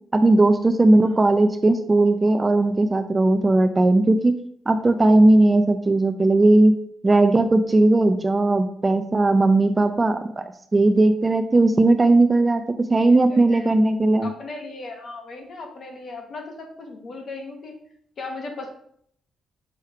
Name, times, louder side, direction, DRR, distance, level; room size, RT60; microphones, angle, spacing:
voice 1, 0.1-4.3 4.7-6.7 7.0-12.6 12.9-14.3, right 2 dB, 15° right, 7 dB, 0.4 m, -17 dB
voice 2, 13.1-13.7 14.2-17.7 18.2-18.7, left 3 dB, 40° left, 3 dB, 1.4 m, -37 dB
6.4 x 3.2 x 5.6 m, 0.66 s
cardioid pair, 155°, 0 cm